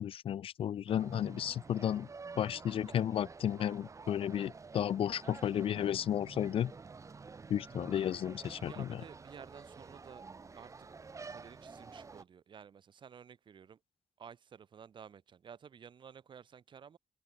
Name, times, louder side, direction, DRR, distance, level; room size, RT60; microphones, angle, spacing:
voice 1, 0.0-2.1 2.4-6.7 7.5-9.0, left 10 dB, 65° left, 0.6 m, -33 dB
sound 1, 0.9-12.2, right 4 dB, 30° right, 5.6 m, -50 dB
voice 2, 8.6-10.3 10.5-10.9 11.3-13.8 14.2-17.0, right 7 dB, 55° right, 3.9 m, -53 dB
wide cardioid pair, 130°, 10 cm